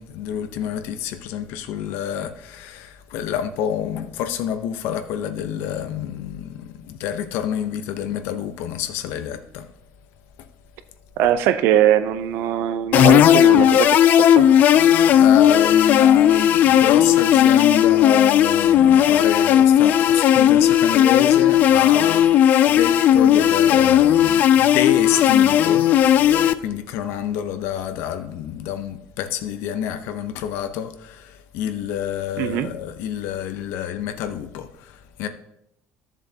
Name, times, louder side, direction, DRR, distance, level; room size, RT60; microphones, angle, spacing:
voice 1, 0.0-9.7 10.4-10.5 14.8-22.3 22.7-25.9 26.1-35.3, left 9 dB, 75° left, 0.8 m, -28 dB
voice 2, 11.2-14.5 32.4-32.7, right 11 dB, 70° right, 0.6 m, -21 dB
sound 1, 12.9-26.5, left 10 dB, 45° left, 0.3 m, -15 dB
13.5 x 7.2 x 2.8 m
cardioid pair, 155°, 4 cm